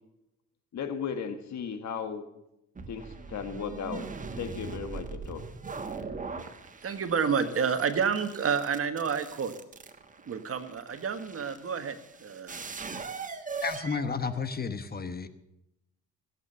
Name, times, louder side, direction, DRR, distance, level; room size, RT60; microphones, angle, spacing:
voice 1, 0.7-2.3 2.9-4.1 4.4-5.4, left 6 dB, 65° left, 9 dB, 1.7 m, -36 dB
sound 1, 2.8-14.8, right 4 dB, 25° right, 1.4 m, -41 dB
voice 2, 6.8-9.5 10.3-12.6, right 6 dB, 50° right, 9 dB, 1.5 m, -29 dB
voice 3, 13.6-15.3, left 5 dB, 30° left, 11 dB, 1.1 m, -32 dB
17.0 x 8.9 x 6.8 m, 0.87 s
cardioid pair, 90°, 30 cm